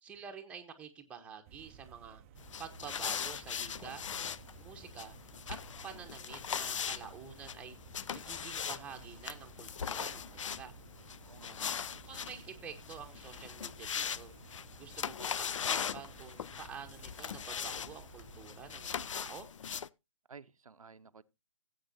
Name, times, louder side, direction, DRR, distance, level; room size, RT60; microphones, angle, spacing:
voice 1, 0.0-2.2 2.6-4.0 4.6-5.1 5.5-5.6 5.8-7.8 8.1-10.7 12.0-14.4 14.8-19.5, right 7 dB, 5° right, 1.0 m, -48 dB
sound 1, 1.5-19.1, right 9 dB, 25° right, 0.5 m, -56 dB
sound 2, 2.4-19.9, left 7 dB, 65° left, 0.4 m, -40 dB
voice 2, 11.2-12.0 20.3-21.2, right 5 dB, 85° right, 0.7 m, -54 dB
16.5 x 8.2 x 2.7 m
hypercardioid pair, 145°, 17 cm